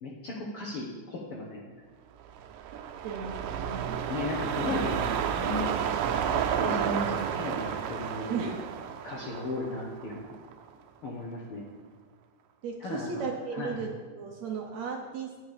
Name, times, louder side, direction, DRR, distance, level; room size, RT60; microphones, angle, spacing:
voice 1, 0.0-1.7 4.1-5.7 6.3-8.6 9.0-10.3 11.0-11.7 12.8-13.9, left 2 dB, 65° left, -2 dB, 1.4 m, -36 dB
sound 1, 2.3-10.7 11.1-11.2, right 8 dB, 90° right, 2.3 m, -31 dB
voice 2, 2.7-4.0 8.3-8.6 12.6-13.9 14.2-15.3, right 5 dB, 70° right, 2 dB, 1.8 m, -36 dB
9.2 x 9.0 x 5.0 m, 1.4 s
omnidirectional pair, 3.8 m